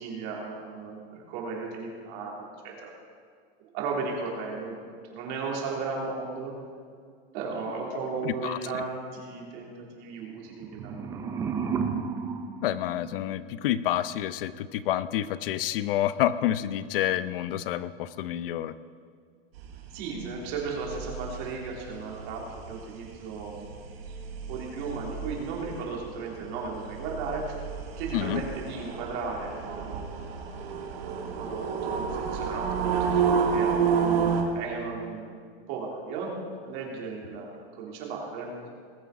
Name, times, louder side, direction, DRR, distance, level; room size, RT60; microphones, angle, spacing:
voice 1, 0.0-2.9 3.7-4.8 5.1-6.5 7.3-11.5 19.9-23.7 24.5-27.6 28.0-30.3 31.1-32.9 33.3-35.3 35.7-38.5, right 4 dB, 45° right, -2 dB, 3.4 m, -35 dB
voice 2, 8.2-8.8 12.6-18.7 28.1-28.4, left 12 dB, 65° left, 15 dB, 0.6 m, -28 dB
sound 1, 10.5-13.6, right 6 dB, 10° right, 0.5 m, -33 dB
sound 2, 19.6-34.4, right 6 dB, 75° right, 2.3 m, -30 dB
20.5 x 8.1 x 4.9 m, 2.1 s
supercardioid pair, 160°, 30 cm